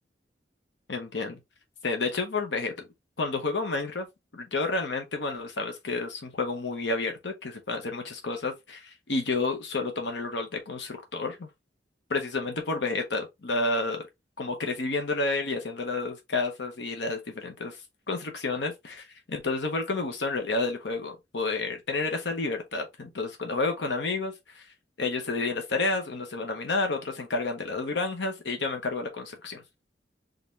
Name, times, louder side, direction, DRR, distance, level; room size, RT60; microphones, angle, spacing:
voice 1, 0.9-1.4 1.8-2.7 3.2-4.1 4.3-11.5 12.1-14.0 14.4-17.8 18.1-24.7 25.0-29.6, left 3 dB, 80° left, 0.9 m, -30 dB
3.6 x 3.6 x 2.6 m
head